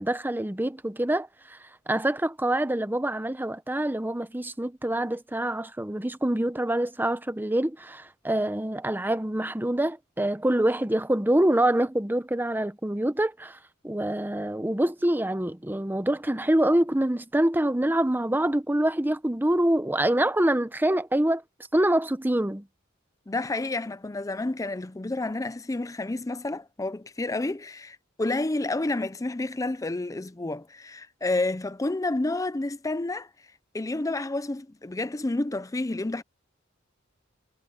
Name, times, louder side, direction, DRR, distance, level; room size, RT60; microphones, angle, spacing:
voice 1, 0.0-1.6 1.9-13.6 13.8-21.4 21.7-22.6, right 1 dB, 10° right, 0.8 m, -25 dB
voice 2, 23.3-33.3 33.7-36.2, left 2 dB, 15° left, 0.5 m, -30 dB
head